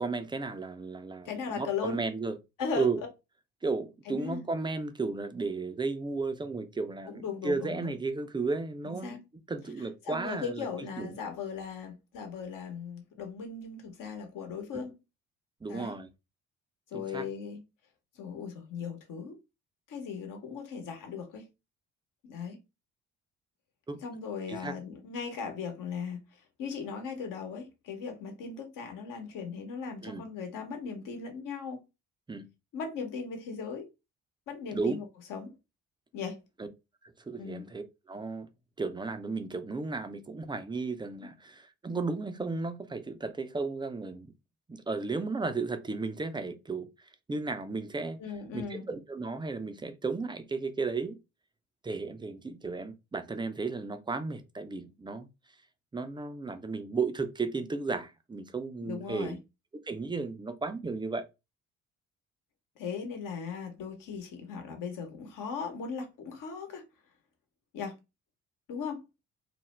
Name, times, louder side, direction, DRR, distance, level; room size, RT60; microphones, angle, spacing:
voice 1, 0.0-2.3 2.8-3.0 3.6-9.2 9.5-10.7 11.0-11.1 14.7-14.8 15.6-16.1 16.9-17.3 23.9-24.0 24.5-24.7 30.0-30.2 32.3-32.5 34.7-35.0 37.3-38.5 38.8-44.3 44.7-46.9 47.3-48.2 48.5-51.2 51.8-55.3 55.9-59.4 59.9-61.3, right 4 dB, 15° right, 0.4 m, -34 dB
voice 2, 1.2-2.0 2.6-2.9 4.1-4.4 7.1-7.9 8.8-9.2 10.0-15.0 15.7-16.0 16.9-17.6 18.1-19.4 19.9-21.5 22.3-22.6 24.0-31.8 32.7-33.9 34.5-35.5 36.1-36.4 37.4-37.6 48.2-48.9 58.8-59.4 62.8-66.8 67.7-68.0 68.7-69.0, left 6 dB, 60° left, 1.0 m, -38 dB
2.4 x 2.0 x 3.2 m
hypercardioid pair, 50°, 36 cm